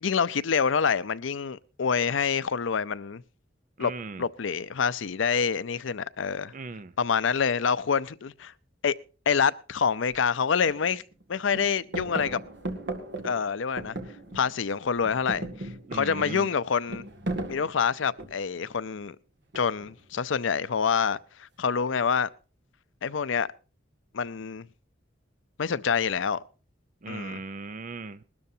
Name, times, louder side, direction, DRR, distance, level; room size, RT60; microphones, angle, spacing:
voice 1, 0.0-3.2 3.8-3.9 4.2-6.5 7.0-8.5 8.8-9.0 9.3-11.0 11.3-12.4 13.2-14.0 14.3-17.0 17.5-19.2 19.5-22.3 23.0-23.5 24.1-24.7 25.6-26.4 27.1-27.4, left 6 dB, 75° left, 0.5 m, -27 dB
voice 2, 3.8-4.2 6.5-6.9 15.9-16.5 27.0-28.2, right 3 dB, 40° right, 0.5 m, -38 dB
sound 1, 10.1-10.2 10.7-11.2 11.5-14.7 15.0-18.6 19.5-20.0, right 2 dB, 60° right, 1.9 m, -37 dB
21.0 x 12.5 x 2.8 m
head